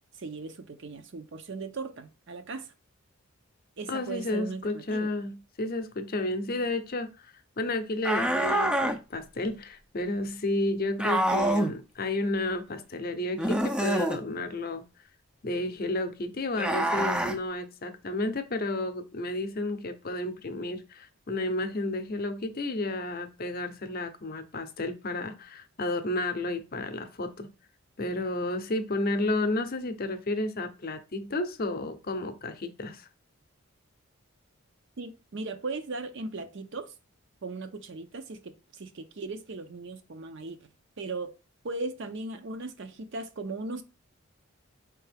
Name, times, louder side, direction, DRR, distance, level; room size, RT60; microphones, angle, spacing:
voice 1, 0.1-2.7 3.8-5.1 35.0-36.9 37.4-40.6 41.0-41.3 41.6-43.8, right 3 dB, 55° right, 0.6 m, -38 dB
voice 2, 3.9-14.8 15.4-27.5 28.0-33.1, left 2 dB, 45° left, 0.6 m, -32 dB
sound 1, 8.0-9.0 11.0-11.7 13.4-14.2 16.6-17.4, right 1 dB, 5° right, 0.3 m, -26 dB
4.6 x 3.4 x 3.3 m
head